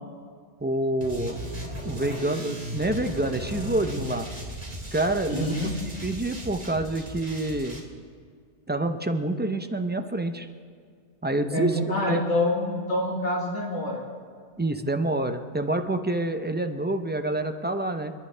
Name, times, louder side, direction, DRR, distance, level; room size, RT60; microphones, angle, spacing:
voice 1, 0.6-1.4 1.8-4.3 4.9-5.5 6.0-7.8 8.7-10.5 11.2-12.2 14.6-18.1, right 1 dB, 15° right, 7 dB, 0.3 m, -27 dB
sound 1, 1.0-7.8, right 1 dB, 30° right, 2.4 m, -36 dB
voice 2, 5.3-5.7 11.5-14.0, left 1 dB, 70° left, -2 dB, 2.1 m, -26 dB
29.5 x 10.5 x 3.3 m, 2.1 s
omnidirectional pair, 1.2 m